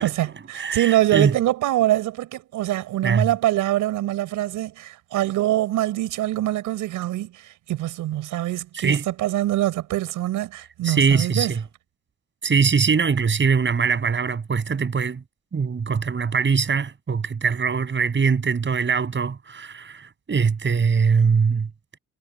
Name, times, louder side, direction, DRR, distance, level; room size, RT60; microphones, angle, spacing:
voice 1, 0.0-11.5, right 14 dB, 90° right, 5.8 m, -24 dB
voice 2, 0.5-1.3 3.0-3.3 8.7-9.0 10.8-11.6 12.4-15.2 15.5-21.7, right 5 dB, 40° right, 7.2 m, -22 dB
cardioid pair, 90°, 30 cm